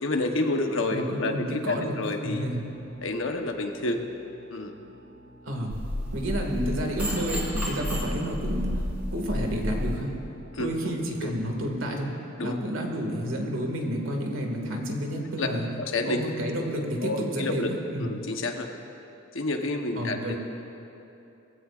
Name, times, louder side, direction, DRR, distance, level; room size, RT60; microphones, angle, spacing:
voice 1, 0.0-2.5 3.0-4.0 4.5-4.7 10.5-11.3 12.4-12.5 15.4-15.5 15.8-16.2 17.0-17.7 18.0-18.7 19.3-20.3, left 2 dB, 65° left, 4 dB, 1.0 m, -29 dB
voice 2, 0.9-2.0 2.2-2.6 5.4-5.8 6.1-8.8 9.1-10.1 10.6-12.1 12.4-15.7 16.1-18.1 20.0-20.3, equal, 70° right, 1 dB, 2.0 m, -30 dB
sound 1, 2.7-12.1, right 2 dB, 40° left, 3.3 m, -51 dB
sound 2, 5.7-10.0, left 1 dB, 5° right, 3.6 m, -31 dB
21.0 x 15.5 x 2.5 m, 2.9 s
head